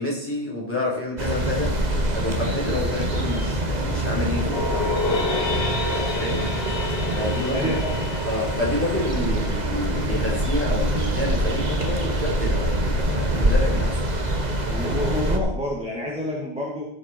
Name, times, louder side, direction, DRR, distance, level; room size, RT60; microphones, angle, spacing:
voice 1, 0.0-1.8 2.1-5.6 5.9-6.4 7.1-7.7 8.2-14.0, left 2 dB, 10° left, -5 dB, 4.6 m, -29 dB
sound 1, 1.2-15.4, right 1 dB, 40° right, 1.7 m, -25 dB
sound 2, 4.5-9.7, left 3 dB, 65° left, 1.6 m, -29 dB
voice 2, 7.5-7.9 14.5-16.9, equal, 5° right, -3 dB, 2.3 m, -29 dB
16.5 x 7.7 x 4.6 m, 0.74 s
omnidirectional pair, 1.1 m